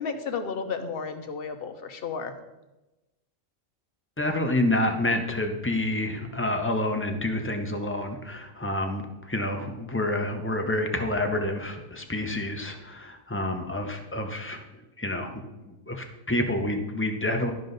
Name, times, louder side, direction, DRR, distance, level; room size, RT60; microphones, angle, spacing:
voice 1, 0.0-2.3, left 5 dB, 50° left, 7 dB, 0.9 m, -32 dB
voice 2, 4.2-14.6 15.0-17.5, left 1 dB, 15° left, 4 dB, 0.6 m, -28 dB
12.5 x 5.3 x 4.0 m, 1.0 s
omnidirectional pair, 1.3 m